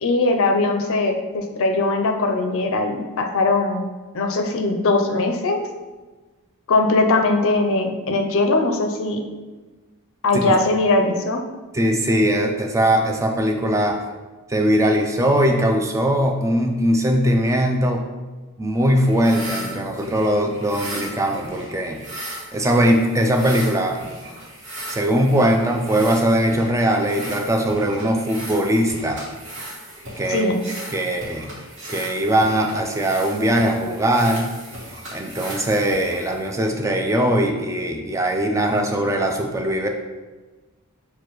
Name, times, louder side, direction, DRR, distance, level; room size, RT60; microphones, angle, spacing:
voice 1, 0.0-3.8 4.1-5.6 6.7-9.2 10.2-11.4 30.3-30.6, left 2 dB, 65° left, 5 dB, 0.5 m, -20 dB
voice 2, 11.7-14.0 14.5-18.0 18.6-22.0 22.5-24.0 24.9-29.2 30.2-30.5 30.9-31.5 31.9-34.5 35.1-39.9, right 1 dB, 15° right, 3 dB, 0.3 m, -20 dB
sound 1, 19.1-36.7, right 1 dB, 55° right, 1.3 m, -37 dB
6.3 x 2.3 x 3.0 m, 1.2 s
head